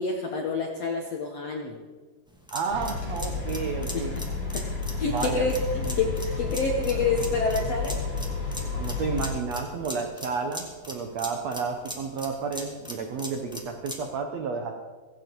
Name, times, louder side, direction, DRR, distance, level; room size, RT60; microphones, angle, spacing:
voice 1, 0.0-1.8 3.9-4.0 4.5-4.6 5.0-6.1 6.4-7.9, left 4 dB, 70° left, 2 dB, 1.5 m, -27 dB
sound 1, 2.3-14.1, equal, ahead, 1.1 m, -40 dB
voice 2, 2.5-4.1 5.0-5.5 5.8-5.9 8.8-14.7, right 5 dB, 85° right, 5 dB, 1.5 m, -31 dB
sound 2, 2.7-9.3, left 4 dB, 40° left, 8.2 m, -31 dB
17.0 x 16.5 x 4.7 m, 1.4 s
omnidirectional pair, 4.8 m